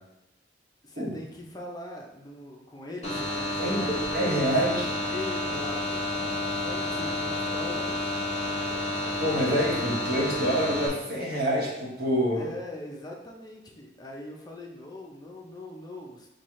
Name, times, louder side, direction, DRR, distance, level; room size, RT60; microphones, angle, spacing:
voice 1, 0.8-4.7 5.1-6.1 6.6-8.2 12.3-16.3, left 1 dB, 20° left, -1 dB, 0.5 m, -40 dB
sound 1, 3.0-10.9, left 1 dB, 35° left, 1.2 m, -30 dB
voice 2, 3.6-4.8 9.2-12.5, equal, 55° right, -3 dB, 1.1 m, -27 dB
5.6 x 2.3 x 3.1 m, 0.90 s
head